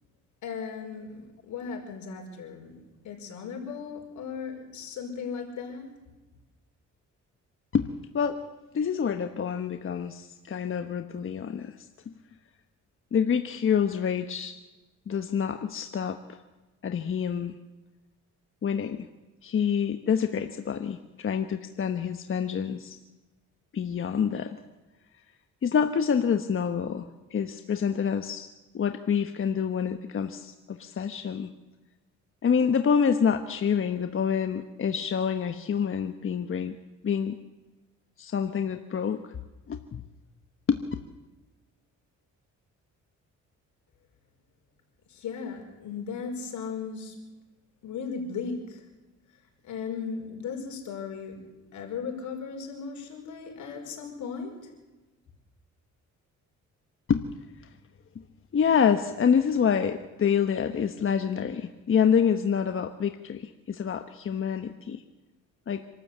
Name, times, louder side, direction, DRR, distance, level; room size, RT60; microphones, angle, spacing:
voice 1, 0.4-5.9 45.1-47.1 47.8-48.8 49.6-51.4 51.7-54.7, left 5 dB, 75° left, 1 dB, 5.4 m, -37 dB
voice 2, 8.7-11.9 13.1-14.5 15.1-16.4 16.8-17.5 18.6-19.1 19.4-23.0 23.7-24.6 25.6-28.5 28.7-31.5 32.4-36.8 37.0-37.4 38.2-39.4 39.7-40.0 40.7-40.8 57.1-57.2 57.6-57.7 58.1-58.2 58.5-65.0 65.7-65.8, left 7 dB, 45° left, 7 dB, 1.1 m, -27 dB
26.5 x 13.0 x 8.2 m, 1.1 s
cardioid pair, 90°, 30 cm